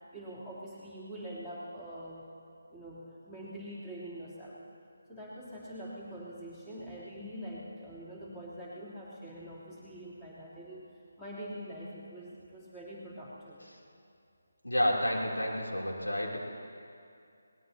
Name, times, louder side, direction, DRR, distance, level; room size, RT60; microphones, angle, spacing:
voice 1, 0.1-2.3 2.7-4.6 5.1-10.9 11.2-13.6, equal, 5° left, -10 dB, 3.3 m, -44 dB
voice 2, 14.6-16.4, equal, 85° left, -3 dB, 3.3 m, -30 dB
22.5 x 19.5 x 2.9 m, 2.5 s
figure-of-eight pair, 155°, 0 cm